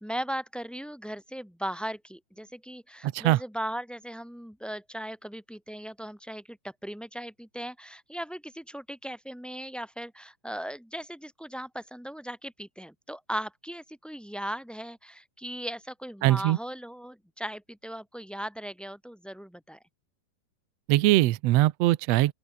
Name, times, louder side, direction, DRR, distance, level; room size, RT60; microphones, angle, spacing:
voice 1, 0.0-19.8, equal, ahead, 2.1 m, -38 dB
voice 2, 3.0-3.4 16.2-16.6 20.9-22.3, right 16 dB, 90° right, 1.4 m, -22 dB
open air
omnidirectional pair, 4.0 m